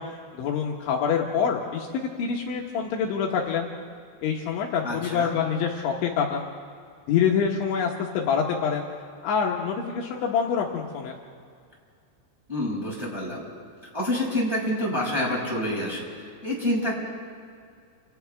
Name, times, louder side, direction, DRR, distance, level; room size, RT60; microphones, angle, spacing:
voice 1, 0.0-3.7 4.2-6.5 7.1-8.9 9.2-11.1, left 7 dB, 70° left, -1 dB, 3.5 m, -26 dB
voice 2, 4.8-5.3 12.5-13.5 13.9-16.9, left 1 dB, 5° right, -5 dB, 5.6 m, -27 dB
29.5 x 28.0 x 3.5 m, 2.2 s
omnidirectional pair, 5.8 m